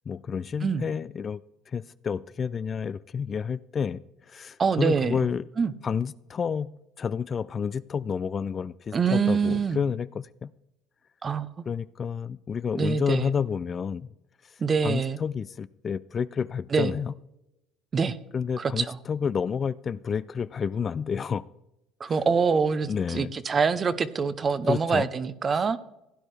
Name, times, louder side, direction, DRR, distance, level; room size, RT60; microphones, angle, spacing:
voice 1, 0.1-1.4 1.7-5.5 5.8-10.5 11.7-14.1 14.4-17.1 18.3-21.5 22.9-23.3 24.7-25.1, left 6 dB, 35° left, 0.3 m, -30 dB
voice 2, 4.6-5.2 5.6-5.7 8.9-9.8 11.2-11.5 12.7-13.3 14.6-15.2 16.7-16.9 17.9-18.2 18.6-19.0 22.0-25.8, right 5 dB, 30° right, 0.7 m, -25 dB
16.0 x 9.7 x 3.3 m
cardioid pair, 115°, 0 cm